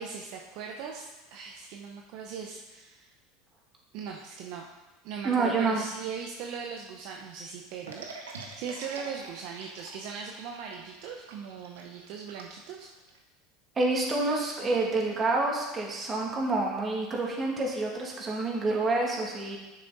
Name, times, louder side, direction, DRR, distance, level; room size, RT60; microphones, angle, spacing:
voice 1, 0.0-3.1 3.9-4.7 5.0-12.9, right 6 dB, 60° right, 1 dB, 0.9 m, -39 dB
voice 2, 5.2-5.8 13.8-19.6, right 3 dB, 30° right, -2 dB, 2.6 m, -28 dB
sound 1, 7.9-13.2, right 4 dB, 90° right, 1.2 m, -45 dB
10.0 x 6.6 x 4.1 m, 1.1 s
hypercardioid pair, 90°, 0 cm